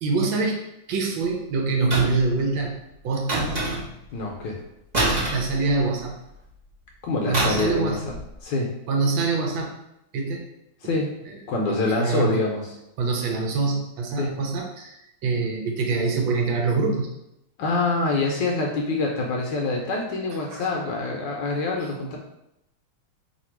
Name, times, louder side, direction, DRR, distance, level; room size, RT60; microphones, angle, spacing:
voice 1, 0.0-0.6 0.9-2.8 3.0-3.6 5.1-6.2 7.2-8.0 8.9-9.8 10.1-10.4 11.3-11.4 11.7-12.4 13.0-17.1 20.5-20.7, right 4 dB, 75° right, 2 dB, 1.3 m, -25 dB
sound 1, 1.9-2.3 3.3-4.1 4.9-6.1 7.3-7.8 8.1-8.3, right 2 dB, 50° right, 0.5 m, -26 dB
voice 2, 4.1-4.6 7.0-7.9 8.4-8.7 10.8-11.1 11.5-12.7 14.2-14.3 17.6-22.2, left 3 dB, 70° left, 0 dB, 1.2 m, -25 dB
3.2 x 2.7 x 4.4 m, 0.84 s
omnidirectional pair, 2.3 m